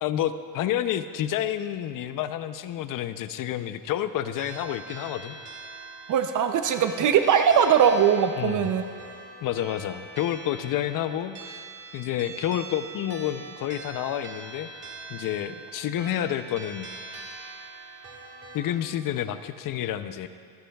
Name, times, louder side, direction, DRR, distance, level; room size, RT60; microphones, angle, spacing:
voice 1, 0.0-5.4 8.4-8.7 9.4-11.7 11.9-14.7 15.1-16.9 18.5-20.3, left 11 dB, 55° left, 12 dB, 0.6 m, -29 dB
sound 1, 4.4-18.6, right 3 dB, 30° right, 1.6 m, -43 dB
voice 2, 6.1-8.8, right 8 dB, 50° right, 8 dB, 0.6 m, -20 dB
24.5 x 9.9 x 2.3 m, 2.3 s
cardioid pair, 130°, 40 cm